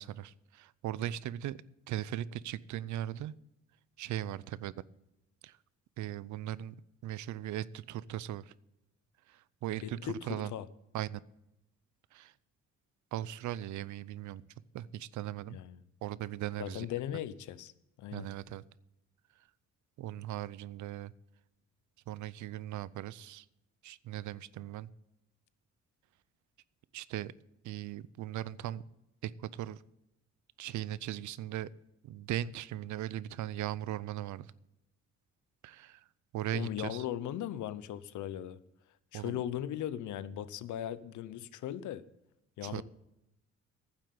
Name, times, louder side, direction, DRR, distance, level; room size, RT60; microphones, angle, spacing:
voice 1, 0.0-1.6 1.9-3.3 4.0-4.7 5.4-5.6 6.0-6.7 7.0-8.5 9.3-10.5 10.9-11.2 12.1-12.3 13.1-14.4 14.7-15.6 16.0-16.9 18.1-18.6 20.0-21.1 22.1-23.5 23.8-24.9 26.9-27.3 27.6-28.8 29.2-29.8 30.6-31.7 32.0-34.5 35.6-36.0 36.3-37.0 39.1-39.4 42.6-42.8, right 12 dB, 70° right, 20 dB, 0.5 m, -38 dB
voice 2, 9.8-10.7 15.5-15.8 16.6-17.7 18.0-18.3 36.5-38.6 39.1-42.0 42.6-42.8, left 11 dB, 75° left, 16 dB, 0.7 m, -38 dB
9.9 x 7.6 x 8.5 m, 0.89 s
cardioid pair, 90°, 30 cm